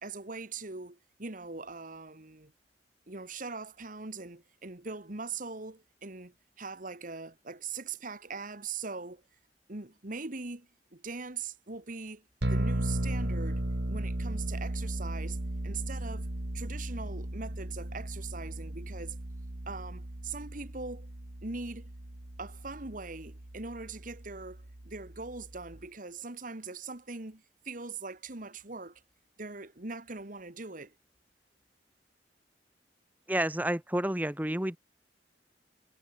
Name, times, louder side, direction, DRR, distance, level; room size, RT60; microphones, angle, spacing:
voice 1, 0.0-2.5 3.1-9.2 9.7-12.2 12.5-15.4 15.6-16.3 16.5-19.2 19.7-21.1 21.4-21.9 22.4-29.0 29.4-30.9, right 4 dB, 50° right, 1.9 m, -41 dB
sound 1, 12.4-25.8, right 1 dB, 70° right, 1.9 m, -36 dB
voice 2, 33.3-34.8, right 1 dB, 10° right, 1.5 m, -30 dB
head